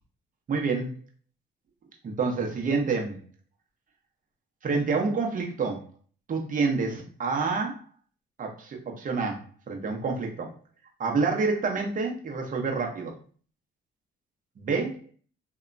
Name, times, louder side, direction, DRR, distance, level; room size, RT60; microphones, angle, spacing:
voice 1, 0.5-0.9 2.0-3.2 4.6-5.8 6.3-7.8 8.4-10.5 11.0-13.1 14.6-15.0, right 4 dB, 40° right, 1 dB, 0.7 m, -28 dB
2.8 x 2.2 x 2.5 m, 0.43 s
cardioid pair, 90°, 20 cm